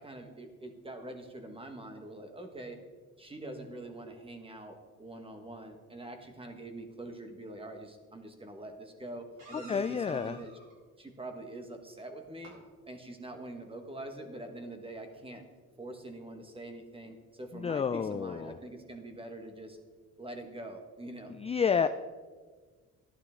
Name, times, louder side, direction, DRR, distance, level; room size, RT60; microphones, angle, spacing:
voice 1, 0.0-2.8 3.2-10.5 11.0-12.6 12.9-15.4 15.8-19.8 20.2-21.4, right 1 dB, 20° right, 5 dB, 1.6 m, -44 dB
sound 1, 8.2-8.3 9.4-10.7 12.2-12.6 14.7-14.8 15.1-15.2, right 2 dB, 80° right, 3.7 m, -52 dB
voice 2, 9.7-10.4 17.5-18.6 21.3-21.9, left 6 dB, 20° left, 11 dB, 0.3 m, -30 dB
11.5 x 11.5 x 3.7 m, 1.5 s
cardioid pair, 90°, 30 cm